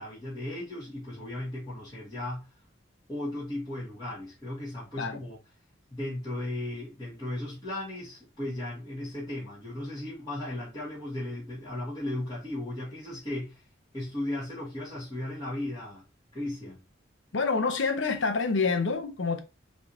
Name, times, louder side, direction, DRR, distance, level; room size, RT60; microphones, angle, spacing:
voice 1, 0.0-2.5 3.1-5.4 5.9-13.7 13.9-16.0 16.3-16.8, left 1 dB, 20° left, 2.3 m, -36 dB
voice 2, 17.3-19.4, left 4 dB, 75° left, 0.8 m, -27 dB
5.2 x 3.4 x 2.8 m
head